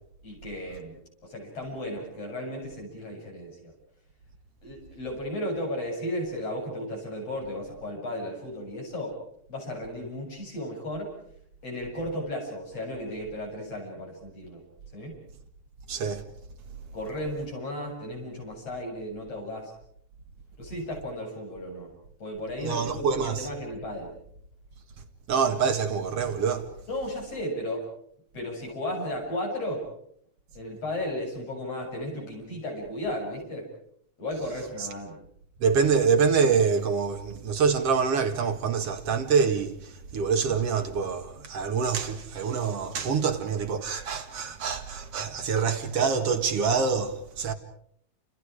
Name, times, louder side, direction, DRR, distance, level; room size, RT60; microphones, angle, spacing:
voice 1, 0.2-3.7 4.6-9.2 9.5-11.1 11.6-14.6 14.9-15.2 16.9-19.7 20.6-21.9 22.2-24.1 26.9-27.9 28.3-29.9 30.6-33.7 34.2-35.2, left 1 dB, 40° left, 8.8 m, -34 dB
voice 2, 15.9-16.3 22.6-23.5 25.3-26.7 35.6-47.5, right 6 dB, 45° right, 2.3 m, -25 dB
29.5 x 28.5 x 5.0 m
omnidirectional pair, 4.5 m